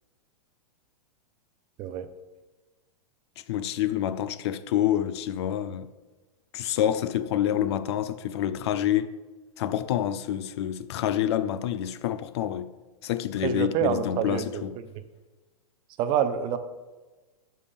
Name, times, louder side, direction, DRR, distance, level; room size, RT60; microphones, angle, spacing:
voice 1, 3.4-5.9 6.5-9.1 9.6-12.7 13.0-14.8, left 11 dB, 45° left, 0.4 m, -27 dB
voice 2, 13.4-14.6 16.0-16.6, right 8 dB, 25° right, 0.5 m, -27 dB
6.1 x 5.5 x 6.9 m
hypercardioid pair, 150°, 19 cm